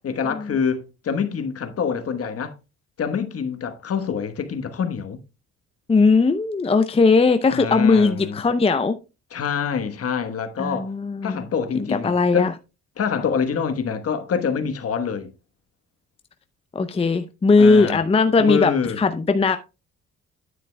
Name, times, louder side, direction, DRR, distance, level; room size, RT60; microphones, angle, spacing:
voice 1, 0.0-2.5 3.0-5.2 7.5-8.4 9.3-10.9 11.2-12.5 13.0-15.3 17.6-18.0 18.4-19.0, left 6 dB, 50° left, 1.2 m, -26 dB
voice 2, 5.9-9.0 10.6-11.4 12.0-12.5 16.7-18.7 19.0-19.6, left 4 dB, 20° left, 0.6 m, -18 dB
9.4 x 9.1 x 2.2 m
cardioid pair, 90°, 30 cm